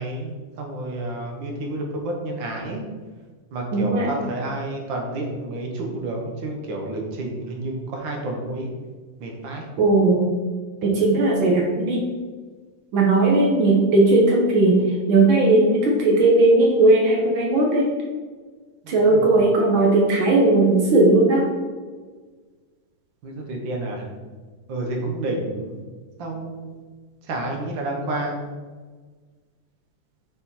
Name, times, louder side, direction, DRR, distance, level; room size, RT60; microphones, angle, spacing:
voice 1, 0.0-2.8 3.5-8.7 9.2-9.6 18.8-19.2 23.2-24.2 24.7-25.8 26.2-26.8 27.3-28.5, right 2 dB, 60° right, 1 dB, 1.2 m, -30 dB
voice 2, 3.7-4.1 9.8-10.2 10.8-12.0 12.9-14.8 15.1-17.9 18.9-21.5, right 2 dB, 80° right, -2 dB, 1.1 m, -17 dB
9.4 x 4.8 x 4.3 m, 1.4 s
omnidirectional pair, 3.9 m